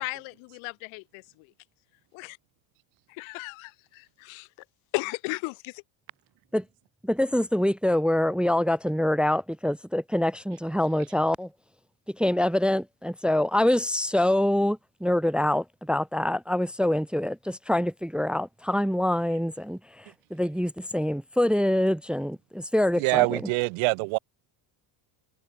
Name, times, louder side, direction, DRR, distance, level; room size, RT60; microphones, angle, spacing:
voice 1, 0.0-1.0 2.1-2.4 3.1-4.5 4.9-5.8, left 30 dB, 80° left, 2.8 m, -35 dB
voice 2, 7.0-11.5 12.1-23.5, left 1 dB, ahead, 0.4 m, -25 dB
voice 3, 23.0-24.2, right 31 dB, 85° right, 2.1 m, -24 dB
cardioid pair, 175°, 47 cm